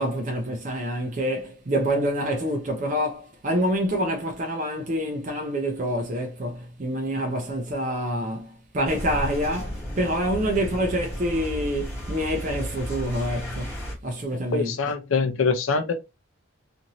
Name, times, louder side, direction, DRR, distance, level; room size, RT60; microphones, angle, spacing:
voice 1, 0.0-14.9, equal, 40° right, 0.4 m, -27 dB
sound 1, 8.8-13.9, equal, 15° left, 1.2 m, -33 dB
voice 2, 14.3-16.0, left 4 dB, 80° left, 0.6 m, -24 dB
2.7 x 2.5 x 2.9 m
head